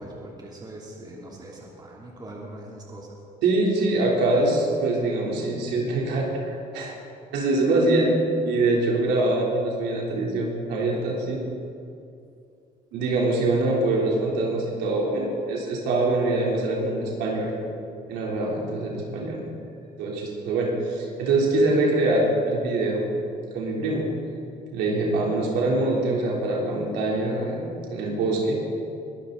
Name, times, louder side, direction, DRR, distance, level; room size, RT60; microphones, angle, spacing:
voice 1, 0.0-3.2, right 1 dB, 25° right, -3 dB, 3.0 m, -41 dB
voice 2, 3.4-6.9 7.3-8.1 8.5-11.4 12.9-17.5 18.1-19.5 20.0-23.0 23.5-24.0 24.7-27.6 27.9-28.6, right 2 dB, 85° right, -3 dB, 3.4 m, -24 dB
22.5 x 12.5 x 4.0 m, 2.5 s
cardioid pair, 110°, 17 cm